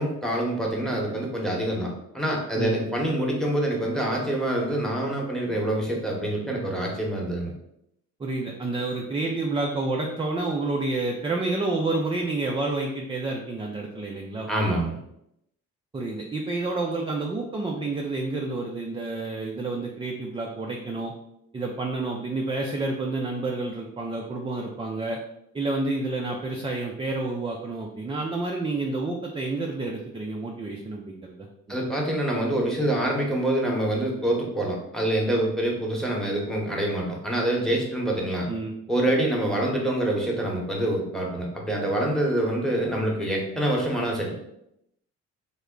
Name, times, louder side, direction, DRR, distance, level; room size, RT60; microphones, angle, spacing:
voice 1, 0.0-7.5 14.5-14.9 31.7-38.5 38.9-44.5, right 1 dB, ahead, -2 dB, 0.9 m, -26 dB
voice 2, 8.2-14.5 15.9-21.1 21.5-25.2 25.5-31.8 38.5-38.7, right 2 dB, 15° right, 0 dB, 0.4 m, -29 dB
3.3 x 2.1 x 3.7 m, 0.79 s
cardioid pair, 90°, 30 cm